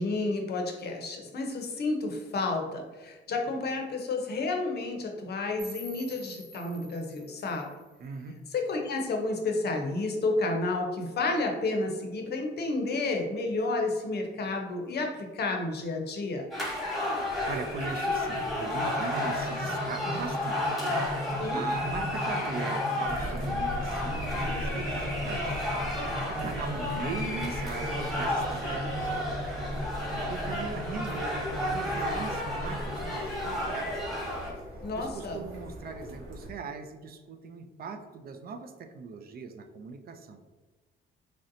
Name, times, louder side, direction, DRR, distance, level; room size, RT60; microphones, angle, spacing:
voice 1, 0.0-7.7 8.5-16.5 21.4-21.6 34.8-35.4, left 3 dB, 55° left, 2 dB, 0.6 m, -31 dB
sound 1, 5.6-8.6, right 2 dB, 20° right, 0.8 m, -48 dB
voice 2, 8.0-8.3 17.1-20.8 21.1-25.6 26.0-31.3 31.6-33.9 34.9-40.4, right 4 dB, 50° right, 6 dB, 0.4 m, -40 dB
sound 2, 16.5-34.5, left 1 dB, ahead, 1.1 m, -31 dB
sound 3, 23.0-36.5, equal, 80° right, 1.0 m, -40 dB
3.2 x 2.6 x 2.6 m, 1.3 s
cardioid pair, 90°, 20 cm